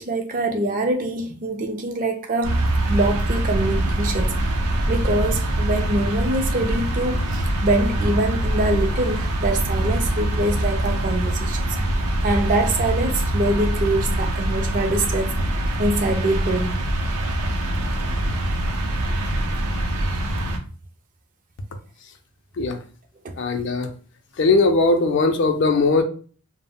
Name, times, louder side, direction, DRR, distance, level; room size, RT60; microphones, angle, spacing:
voice 1, 0.0-4.6 4.9-11.6 11.9-15.3 15.8-16.8 23.2-23.3, right 2 dB, 35° right, 0.4 m, -24 dB
sound 1, 2.4-20.6, right 1 dB, 90° right, 0.6 m, -23 dB
voice 2, 23.4-23.9 24.4-26.0, left 3 dB, 55° left, 0.4 m, -19 dB
2.0 x 2.0 x 3.6 m
head